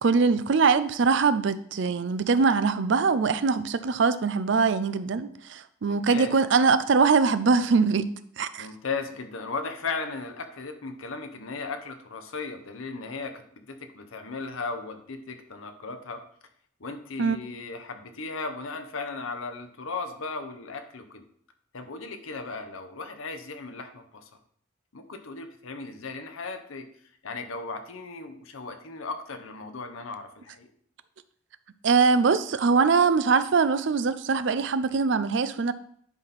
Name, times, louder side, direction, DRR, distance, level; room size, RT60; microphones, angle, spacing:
voice 1, 0.0-8.1 8.4-8.7 17.2-17.4 31.8-35.7, right 5 dB, 60° right, 0.4 m, -22 dB
voice 2, 5.8-6.3 8.6-16.2 16.8-21.2 21.7-24.3 24.9-26.9 27.2-30.7, left 4 dB, 85° left, 0.8 m, -36 dB
10.5 x 4.3 x 4.1 m
head